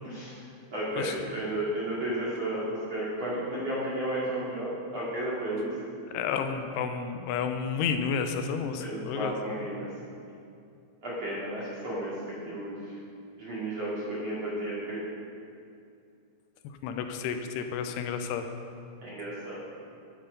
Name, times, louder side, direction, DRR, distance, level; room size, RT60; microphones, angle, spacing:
voice 1, 0.0-0.4 0.7-5.7 8.8-9.9 11.0-12.1 12.4-13.0 13.4-15.0 19.0-19.6, right 1 dB, 40° right, -8 dB, 2.6 m, -33 dB
voice 2, 6.1-9.3 16.8-18.5, left 6 dB, 80° left, 6 dB, 2.6 m, -31 dB
12.0 x 11.5 x 5.2 m, 2.5 s
omnidirectional pair, 5.4 m